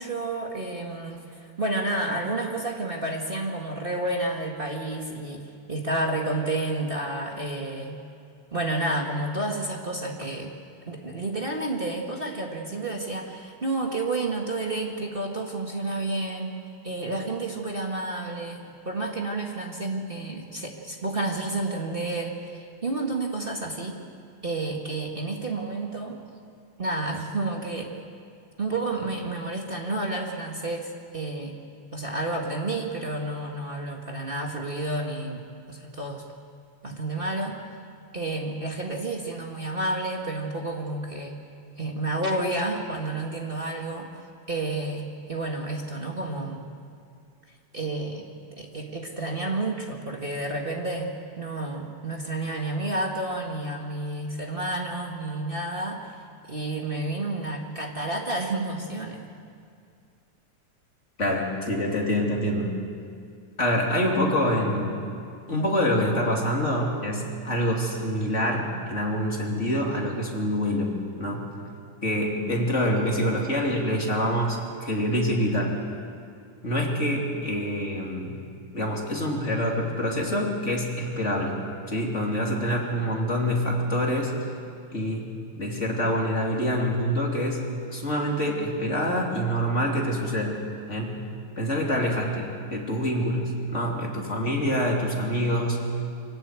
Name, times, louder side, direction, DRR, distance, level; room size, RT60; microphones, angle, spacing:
voice 1, 0.0-8.0 8.5-10.5 10.9-16.5 16.8-24.0 24.4-26.2 26.8-27.9 28.6-31.6 31.9-36.2 36.8-37.6 38.1-41.4 41.8-44.1 44.5-46.7 47.7-48.2 48.6-56.1 56.5-59.3, right 2 dB, 25° right, 0 dB, 1.3 m, -30 dB
voice 2, 61.2-62.8 63.6-65.0 65.5-71.5 72.0-75.8 76.6-78.4 78.7-81.6 81.9-84.3 84.9-85.3 85.6-90.6 90.9-91.2 91.6-95.9, equal, 25° left, -1 dB, 3.1 m, -26 dB
24.5 x 18.5 x 8.4 m, 2.4 s
omnidirectional pair, 3.3 m